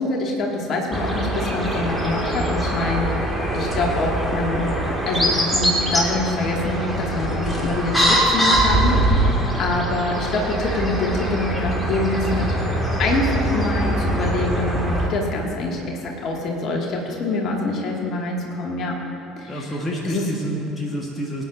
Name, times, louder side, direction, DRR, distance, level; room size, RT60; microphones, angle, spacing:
voice 1, 0.0-3.1 3.5-4.7 5.1-12.5 13.0-19.0 19.4-19.6 20.0-20.2, left 2 dB, 45° left, -1 dB, 2.1 m, -25 dB
sound 1, 0.9-15.1, right 1 dB, ahead, 2.1 m, -23 dB
voice 2, 19.4-21.4, equal, 15° left, -2 dB, 1.6 m, -28 dB
23.5 x 9.4 x 2.7 m, 3.0 s
figure-of-eight pair, 60°, 0 cm